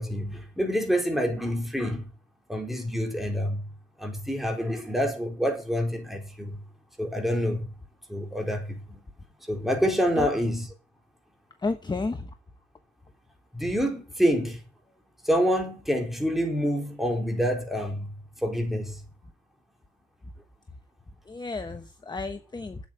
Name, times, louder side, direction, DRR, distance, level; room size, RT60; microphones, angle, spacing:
voice 1, 0.0-2.1 2.5-3.7 4.0-6.6 7.0-7.7 8.1-9.0 9.5-10.7 13.5-14.6 15.2-19.0, equal, ahead, 4.1 m, -27 dB
voice 2, 11.6-12.3 21.3-22.8, left 3 dB, 20° left, 1.2 m, -32 dB
8.6 x 8.3 x 7.5 m
cardioid pair, 90°, 20 cm